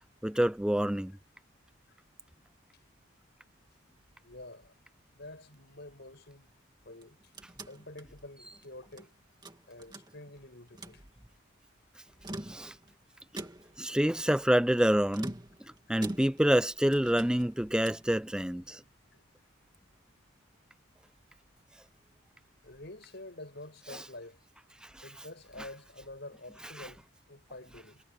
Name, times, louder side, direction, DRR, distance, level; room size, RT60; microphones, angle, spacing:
voice 1, 0.2-1.1 12.5-12.7 13.8-15.3 15.9-18.8 23.9-24.0 26.8-26.9, equal, 5° right, 0.4 m, -27 dB
voice 2, 4.2-4.7 5.1-6.5 6.8-7.2 7.7-9.1 9.7-11.0 19.1-19.2 22.6-24.4 25.0-28.0, left 2 dB, 50° left, 6.7 m, -48 dB
sound 1, 6.9-9.1 9.4-10.4 10.7-11.0 12.1-12.9 13.4-13.9 15.1-16.6 16.9-18.1, right 1 dB, 20° right, 2.4 m, -44 dB
head